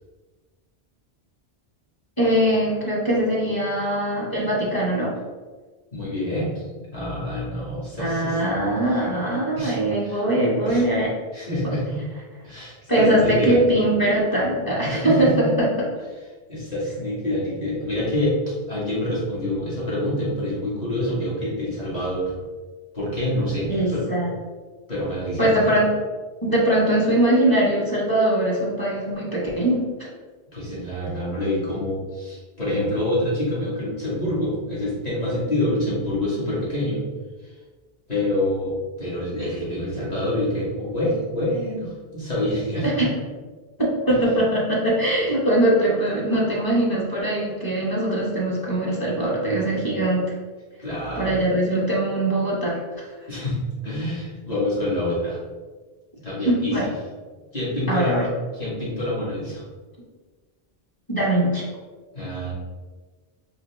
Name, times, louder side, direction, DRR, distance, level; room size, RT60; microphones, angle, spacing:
voice 1, 2.2-5.1 8.0-11.1 12.9-15.7 23.7-24.3 25.4-25.9 26.4-29.8 42.8-43.1 43.8-50.2 51.2-53.1 56.4-56.8 57.9-58.2 61.1-61.6, right 1 dB, 20° left, -6 dB, 1.2 m, -21 dB
voice 2, 5.9-6.6 6.9-8.4 9.6-9.8 10.0-10.2 10.7-10.8 11.3-12.1 12.4-13.6 14.8-15.5 16.5-22.4 22.9-24.0 24.9-25.7 30.5-37.0 37.4-37.5 38.1-38.7 39.0-43.1 44.1-44.2 50.8-51.4 53.3-53.6 53.8-55.4 56.2-56.9 57.5-59.6 62.1-62.5, left 1 dB, 40° left, -8 dB, 1.8 m, -26 dB
3.9 x 3.1 x 3.4 m, 1.4 s
omnidirectional pair, 1.1 m